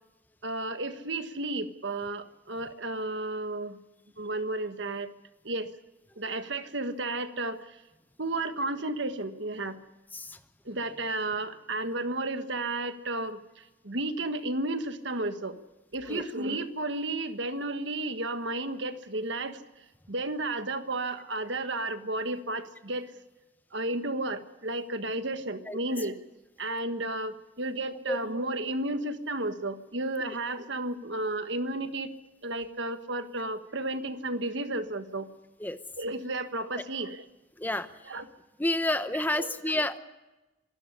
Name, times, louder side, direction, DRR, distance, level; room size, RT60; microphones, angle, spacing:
voice 1, 0.4-3.8 4.2-5.1 5.4-5.7 6.2-7.8 8.2-9.8 10.6-15.6 15.9-19.6 20.1-23.1 23.7-26.2 26.6-32.1 32.4-35.3 36.0-37.2 38.1-38.3 39.4-39.5, right 2 dB, 65° right, 9 dB, 1.5 m, -33 dB
voice 2, 37.6-37.9 38.6-40.0, left 1 dB, 10° left, 11 dB, 0.8 m, -29 dB
25.5 x 13.0 x 9.9 m, 1.0 s
head